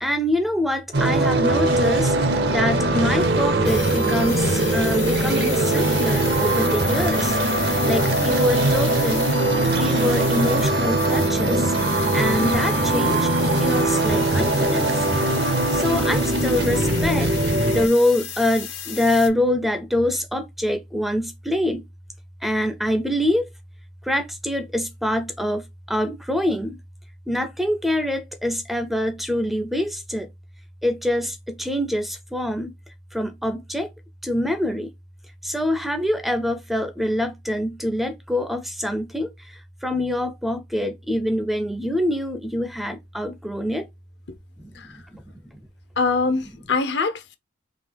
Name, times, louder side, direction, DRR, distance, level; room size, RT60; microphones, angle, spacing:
voice 1, 0.0-2.2 2.5-9.3 9.8-11.7 12.1-15.1 15.7-17.3 17.7-21.8 22.4-23.5 24.0-26.8 27.3-30.3 30.8-32.7 33.1-33.9 34.2-34.9 35.4-43.9 44.6-45.6, left 1 dB, ahead, 0.4 m, -25 dB
sound 1, 0.9-17.9, right 2 dB, 55° right, 0.7 m, -21 dB
sound 2, 0.9-11.8, right 3 dB, 85° right, 0.9 m, -34 dB
sound 3, 3.6-19.3, left 9 dB, 80° left, 1.1 m, -34 dB
voice 2, 46.0-47.4, left 4 dB, 65° left, 0.7 m, -23 dB
3.8 x 2.8 x 3.3 m
head